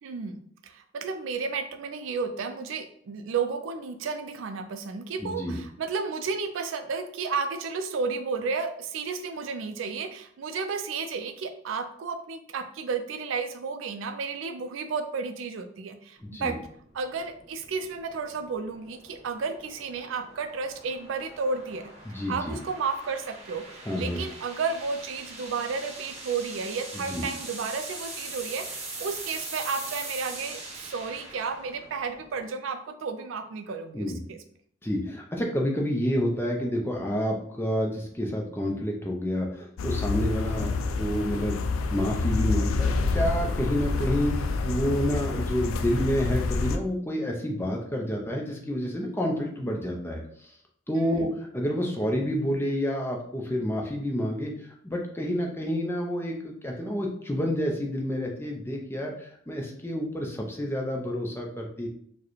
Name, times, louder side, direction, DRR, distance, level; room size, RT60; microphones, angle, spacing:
voice 1, 0.0-16.6 16.9-21.9 22.3-34.4 51.2-51.3, right 5 dB, 70° right, 7 dB, 0.4 m, -32 dB
voice 2, 5.2-5.6 16.2-16.5 22.1-22.6 23.9-24.2 27.1-27.3 33.9-34.2 34.8-40.7 41.0-50.2 50.9-61.9, equal, 10° left, 0 dB, 0.5 m, -29 dB
sound 1, 16.2-32.5, right 2 dB, 30° right, 0.9 m, -42 dB
sound 2, 39.8-46.8, left 3 dB, 80° left, 0.4 m, -28 dB
4.6 x 2.1 x 3.1 m, 0.63 s
head